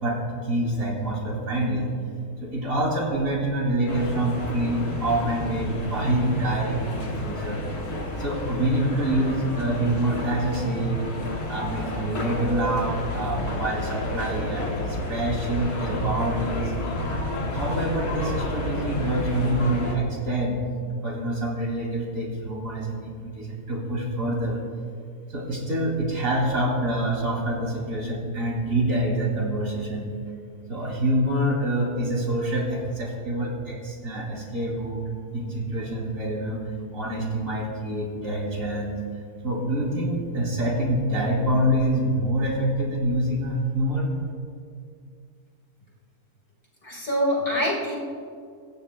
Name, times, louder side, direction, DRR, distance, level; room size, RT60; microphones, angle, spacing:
voice 1, 0.0-1.9 2.4-7.7 8.1-11.1 11.5-16.7 17.5-24.6 25.3-30.2 30.7-35.0 35.3-36.6 36.9-39.0 39.4-44.1, right 1 dB, 60° right, -2 dB, 3.0 m, -26 dB
sound 1, 3.9-20.0, left 1 dB, 80° left, 2.4 m, -30 dB
voice 2, 46.8-47.9, equal, 30° left, -5 dB, 3.5 m, -25 dB
24.5 x 16.0 x 2.2 m, 2.2 s
omnidirectional pair, 1.6 m